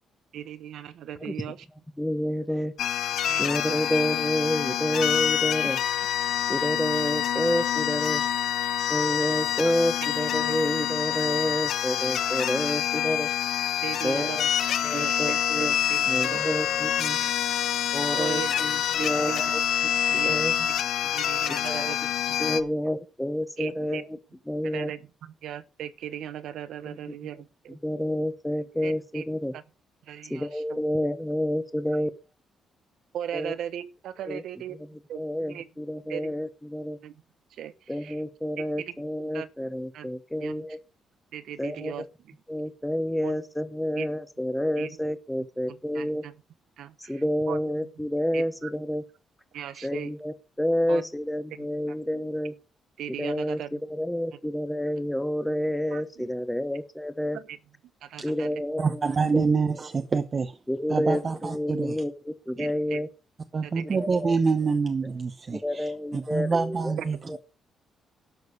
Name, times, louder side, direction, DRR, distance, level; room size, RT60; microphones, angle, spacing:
voice 1, 0.3-1.6 3.3-3.8 9.6-9.7 10.4-10.6 13.8-14.5 14.8-16.6 17.2-17.3 18.1-18.5 19.0-19.4 20.0-20.4 21.0-22.7 23.6-24.0 24.6-27.8 28.8-29.2 29.5-29.6 30.0-30.8 33.1-34.8 35.1-35.2 35.5-35.7 36.1-36.3 37.0-37.2 37.5-38.2 38.6-38.9 39.3-39.5 39.9-40.1 40.4-40.6 41.3-42.3 43.2-43.4 43.9-44.1 44.8-45.0 45.7-46.4 46.8-47.6 48.3-48.7 49.5-50.1 50.9-51.1 51.5-52.2 53.0-53.7 55.9-56.3 57.3-57.6 58.0-58.5 62.6-63.0 63.6-64.0 67.0-67.1, right 10 dB, 75° right, 1.1 m, -38 dB
voice 2, 2.0-2.7 3.4-5.8 6.5-8.2 8.9-13.3 14.0-14.4 14.8-15.7 16.1-17.2 17.9-19.6 20.2-20.5 21.5-21.9 22.4-24.0 24.5-24.9 27.8-29.5 30.3-32.1 33.3-33.5 34.3-34.4 35.1-37.0 37.9-40.8 41.6-41.9 42.5-46.2 47.1-49.0 49.8-52.5 53.2-57.4 58.2-59.8 60.7-63.1 63.9-64.3 65.5-66.9 67.3-67.4, left 1 dB, 5° left, 1.1 m, -29 dB
sound 1, 2.8-22.6, left 10 dB, 70° left, 1.0 m, -26 dB
voice 3, 58.8-60.6 60.9-62.0 62.6-62.7 63.5-67.4, right 4 dB, 30° right, 0.9 m, -26 dB
12.0 x 6.5 x 6.6 m
cardioid pair, 150°, 0 cm